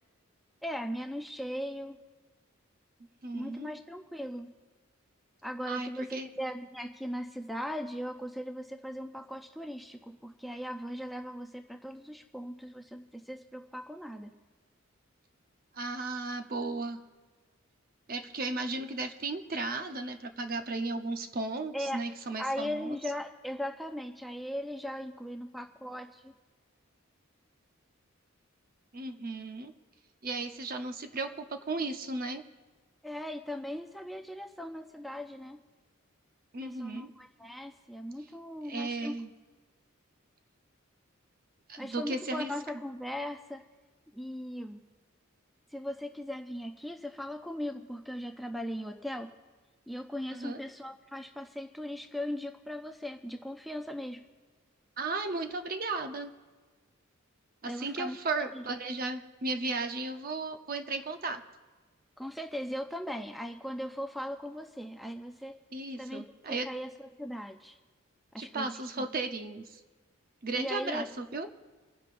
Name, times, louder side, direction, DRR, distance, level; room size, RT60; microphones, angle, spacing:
voice 1, 0.6-2.0 3.3-4.5 5.4-14.3 21.7-22.0 22.4-26.3 33.0-35.6 36.6-39.2 41.8-43.6 44.1-44.8 45.7-49.3 49.9-54.2 57.6-58.6 62.2-65.6 66.0-67.8 68.3-69.1 70.6-71.1, equal, ahead, 5 dB, 0.5 m, -38 dB
voice 2, 3.2-3.7 5.6-6.3 15.7-17.0 18.1-23.0 28.9-29.7 30.2-32.4 36.5-37.1 38.6-39.3 41.7-42.5 50.3-50.6 55.0-56.3 57.6-61.4 65.7-66.7 68.4-69.8 70.4-71.5, right 3 dB, 45° right, 6 dB, 0.8 m, -35 dB
28.5 x 10.0 x 2.6 m, 1.4 s
head